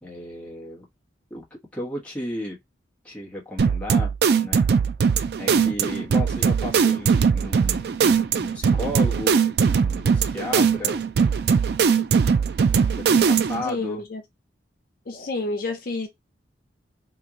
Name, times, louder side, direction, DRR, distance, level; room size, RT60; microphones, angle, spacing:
voice 1, 0.0-0.8 1.3-1.4 1.7-2.6 3.0-4.1 4.4-4.6 5.4-8.0 8.3-11.0 12.9-14.0, left 1 dB, 5° left, 1.2 m, -34 dB
sound 1, 3.6-13.7, right 6 dB, 60° right, 0.3 m, -20 dB
voice 2, 13.6-14.2 15.1-16.1, left 2 dB, 55° left, 0.5 m, -29 dB
3.0 x 2.6 x 3.6 m
head